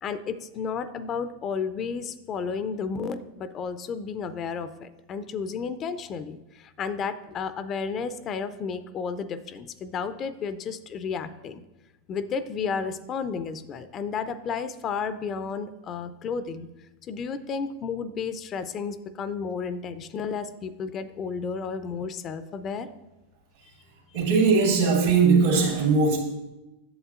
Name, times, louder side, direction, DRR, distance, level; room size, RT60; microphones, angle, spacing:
voice 1, 0.0-11.6 12.1-16.7 17.1-22.9, left 5 dB, 35° left, 13 dB, 0.4 m, -32 dB
voice 2, 24.1-26.2, right 4 dB, 75° right, -1 dB, 2.2 m, -20 dB
8.0 x 7.3 x 2.5 m, 1.0 s
hypercardioid pair, 95°, 0 cm